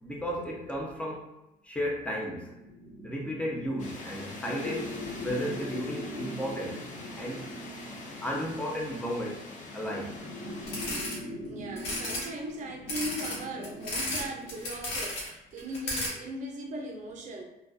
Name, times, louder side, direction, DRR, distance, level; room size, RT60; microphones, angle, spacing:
voice 1, 0.0-1.3 1.6-2.5 3.0-4.9 5.2-6.8 7.2-7.5 8.1-9.4 9.7-10.2, equal, 5° left, -2 dB, 0.6 m, -33 dB
sound 1, 2.3-14.7, left 1 dB, 30° left, 1.0 m, -42 dB
sound 2, 3.8-10.9, left 2 dB, 45° left, 0.6 m, -44 dB
sound 3, 10.7-11.2 11.8-12.2 12.9-14.2 14.5-15.3 15.6-16.1, left 1 dB, 85° left, 1.0 m, -33 dB
voice 2, 11.4-17.4, right 1 dB, 45° right, 0 dB, 0.5 m, -39 dB
2.4 x 2.3 x 2.4 m, 0.95 s
cardioid pair, 110°, 17 cm